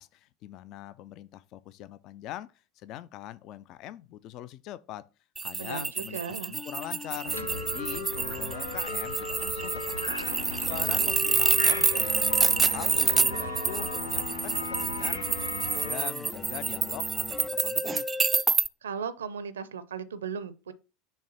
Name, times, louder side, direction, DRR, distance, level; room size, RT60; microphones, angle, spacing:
voice 1, 0.0-5.1 5.4-10.2 10.7-15.2 15.5-18.1, left 13 dB, 45° left, 0.5 m, -42 dB
sound 1, 5.4-18.7, right 4 dB, 20° right, 0.3 m, -28 dB
voice 2, 5.6-6.5 18.8-20.7, right 6 dB, 75° right, 0.6 m, -36 dB
sound 2, 6.5-18.4, left 3 dB, 15° left, 0.7 m, -40 dB
sound 3, 7.3-16.0, left 1 dB, 90° left, 0.8 m, -36 dB
6.4 x 3.3 x 5.6 m
figure-of-eight pair, 75°, 0 cm